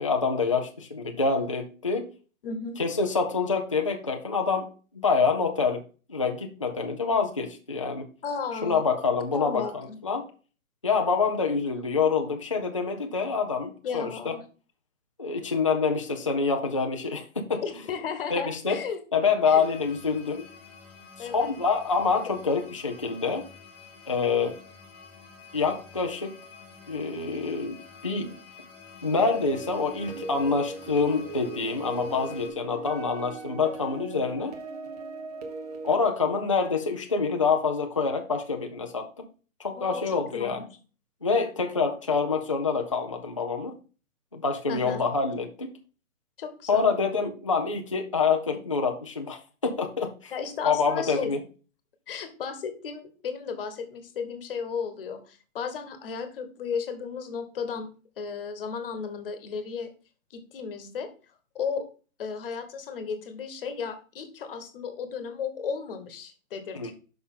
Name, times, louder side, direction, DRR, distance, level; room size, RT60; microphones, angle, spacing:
voice 1, 0.0-2.1 2.8-4.7 4.9-5.8 6.1-8.1 8.6-9.6 10.0-10.2 10.8-14.4 15.2-17.6 18.3-18.8 19.1-20.5 21.2-23.4 24.1-24.6 25.5-26.3 26.9-27.8 28.0-28.3 29.0-34.5 35.8-39.2 39.6-40.6 41.2-43.7 44.3-45.7 46.7-50.3 50.6-51.4 66.7-66.9, left 5 dB, 25° left, 4 dB, 0.4 m, -26 dB
voice 2, 2.4-2.8 8.2-8.9 9.3-10.0 13.8-14.4 17.6-19.0 19.4-19.7 21.2-21.5 39.8-40.7 44.7-45.0 46.4-46.9 50.3-51.3 52.1-57.9 58.2-59.9 60.3-61.1 61.5-61.9 62.2-66.9, left 6 dB, 40° left, 9 dB, 1.2 m, -34 dB
Glass stretched, 19.5-32.5, left 5 dB, 5° left, 0.9 m, -49 dB
sound 1, 29.2-36.0, right 3 dB, 30° right, 0.8 m, -39 dB
6.2 x 5.6 x 3.6 m, 0.36 s
hypercardioid pair, 160°, 42 cm